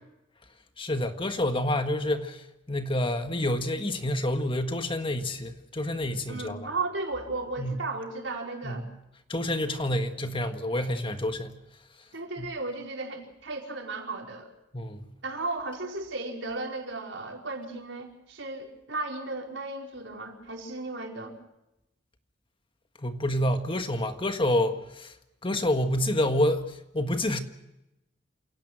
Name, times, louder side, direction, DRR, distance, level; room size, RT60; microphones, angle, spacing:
voice 1, 0.8-6.7 7.6-7.8 8.6-8.7 9.3-11.6 12.4-12.5 14.7-15.1 23.0-25.1 25.4-27.4, left 1 dB, 30° left, 1.6 m, -28 dB
voice 2, 6.3-8.9 12.1-14.5 15.2-21.4, right 3 dB, 80° right, 4.9 m, -35 dB
28.0 x 17.5 x 6.1 m
head